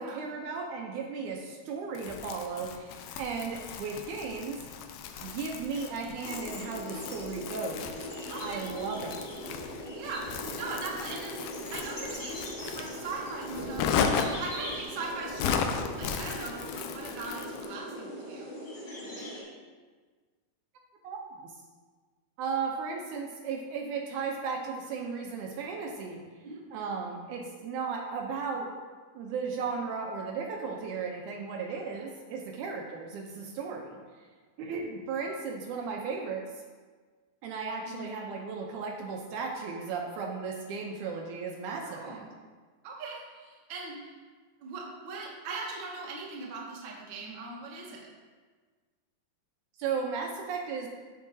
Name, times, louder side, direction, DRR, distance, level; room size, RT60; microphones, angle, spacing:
voice 1, 0.0-4.6 5.2-9.2 21.0-21.2 22.4-26.2 26.7-28.7 29.1-34.0 34.6-36.4 37.4-42.2 49.8-50.9, right 5 dB, 75° right, 1 dB, 2.0 m, -35 dB
Crumpling crinkling, 1.9-17.7, left 6 dB, 90° left, 2.3 m, -36 dB
sound 1, 6.2-19.4, equal, 40° left, 3.1 m, -40 dB
voice 2, 8.3-8.6 10.0-18.5 26.4-26.6 31.9-32.1 37.8-38.1 41.8-42.3 42.8-44.2 44.6-48.1, right 3 dB, 60° right, -3 dB, 1.3 m, -40 dB
13.0 x 4.7 x 2.6 m, 1.5 s
omnidirectional pair, 3.8 m